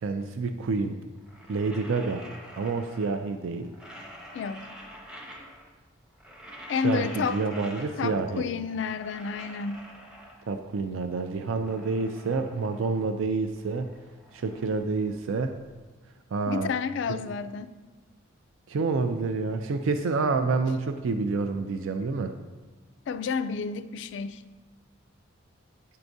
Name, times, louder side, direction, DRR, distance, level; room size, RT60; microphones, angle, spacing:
voice 1, 0.0-1.0 1.5-2.2 2.5-3.7 6.8-8.4 10.5-13.9 14.3-15.6 16.3-16.7 17.1-17.2 18.7-22.4, right 4 dB, 75° right, 7 dB, 0.4 m, -28 dB
sound 1, 1.2-3.3 3.6-5.8 6.1-8.3 8.6-10.7 11.2-13.2 13.4-15.6, equal, 5° right, 0.6 m, -47 dB
voice 2, 4.3-4.7 6.7-7.4 8.0-9.8 16.5-17.8 23.1-24.4, left 5 dB, 60° left, 12 dB, 0.3 m, -30 dB
9.8 x 4.7 x 2.6 m, 1.3 s
head